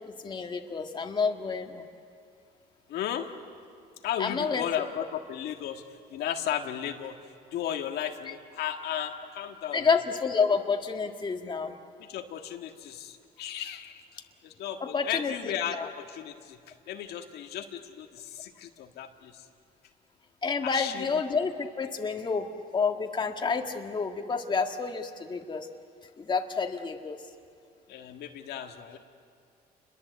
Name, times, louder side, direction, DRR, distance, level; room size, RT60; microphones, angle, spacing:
voice 1, 0.2-1.8 4.2-4.7 9.7-11.8 14.8-15.9 20.4-22.5 22.7-25.7 26.2-27.2, left 5 dB, 25° left, 4 dB, 1.8 m, -29 dB
voice 2, 2.9-3.3 4.0-7.2 7.5-9.9 12.0-14.0 14.4-19.5 20.6-21.2 27.9-29.0, left 10 dB, 75° left, 4 dB, 1.8 m, -35 dB
29.0 x 22.0 x 8.1 m, 2.4 s
cardioid pair, 110°, 17 cm